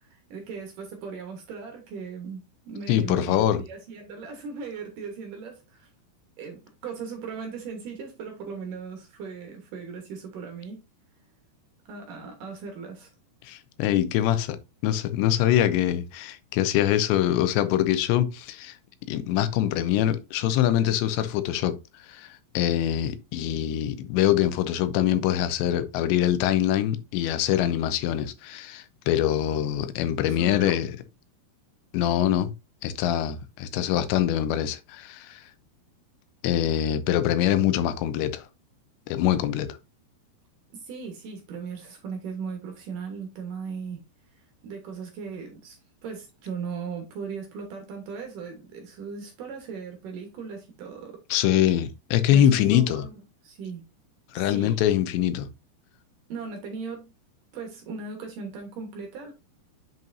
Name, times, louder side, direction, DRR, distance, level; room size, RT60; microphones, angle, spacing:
voice 1, 0.0-5.9 6.4-10.8 11.9-13.1 30.3-30.8 40.7-44.0 44.3-51.2 52.3-53.8 54.4-54.8 56.3-57.1 57.5-59.3, right 5 dB, 65° right, 2.3 m, -38 dB
voice 2, 2.9-3.6 13.4-14.6 14.8-18.8 19.1-21.8 22.1-22.3 22.5-30.9 31.9-32.5 32.8-35.4 36.4-38.5 39.1-39.7 51.3-53.1 54.3-55.5, left 11 dB, 90° left, 3.0 m, -24 dB
7.3 x 5.4 x 2.6 m
omnidirectional pair, 5.0 m